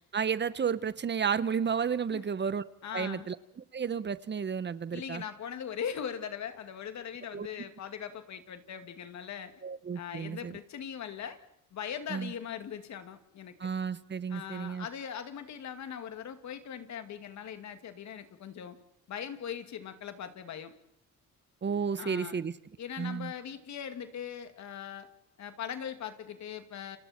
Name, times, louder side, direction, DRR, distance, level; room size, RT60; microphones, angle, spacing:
voice 1, 0.0-2.6 2.9-3.4 3.7-5.2 7.3-7.5 9.6-10.6 12.1-12.3 13.6-14.9 21.6-22.5 23.0-23.3, right 6 dB, 35° right, 0.9 m, -32 dB
voice 2, 2.8-3.3 4.9-9.5 9.9-11.4 11.7-13.7 14.3-18.8 19.1-20.7 22.0-22.4 22.8-25.1 25.4-27.0, left 8 dB, 65° left, 2.4 m, -40 dB
30.0 x 26.0 x 4.4 m
cardioid pair, 90°, 30 cm